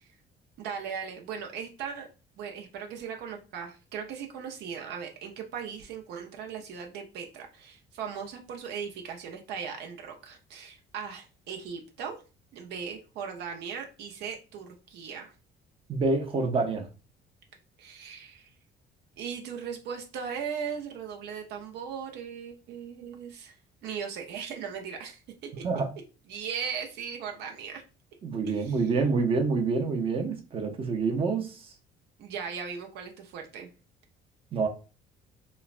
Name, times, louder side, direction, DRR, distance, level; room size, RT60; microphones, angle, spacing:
voice 1, 0.6-2.1 2.4-12.2 12.5-15.3 17.8-18.5 19.2-23.6 23.8-25.2 25.6-25.7 26.3-27.8 28.4-28.8 32.2-33.7, right 7 dB, 80° right, 2 dB, 0.5 m, -38 dB
voice 2, 15.9-16.9 25.6-25.9 28.2-31.6 34.5-34.7, right 4 dB, 35° right, 3 dB, 0.6 m, -27 dB
3.1 x 2.0 x 2.4 m, 0.33 s
cardioid pair, 110°, 17 cm